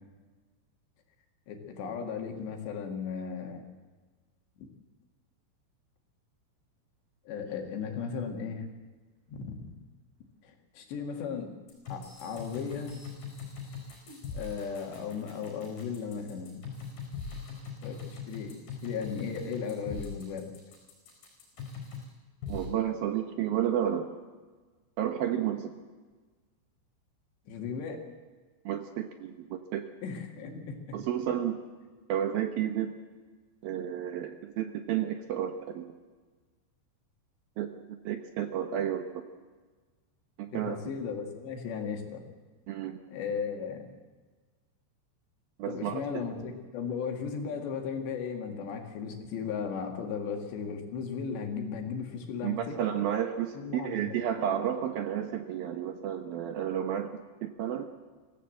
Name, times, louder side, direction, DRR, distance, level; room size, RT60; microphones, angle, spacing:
voice 1, 1.5-3.7 4.6-4.7 7.3-8.7 9.3-9.7 10.4-11.5 11.9-13.0 14.3-16.6 17.8-20.5 27.5-28.0 30.0-31.0 40.5-42.2 43.1-43.9 45.7-52.8 53.6-54.1, left 6 dB, 65° left, 4 dB, 4.2 m, -36 dB
sound 1, 11.7-22.1 22.4-22.6, left 5 dB, 50° left, 7.0 m, -41 dB
voice 2, 22.5-24.1 25.0-25.7 28.7-29.9 30.9-31.6 32.1-33.0 33.6-35.9 37.6-39.2 40.4-40.8 42.7-43.0 45.6-46.0 52.4-57.1 57.4-57.9, right 10 dB, 70° right, 7 dB, 2.3 m, -31 dB
24.5 x 16.0 x 7.8 m, 1.4 s
omnidirectional pair, 5.5 m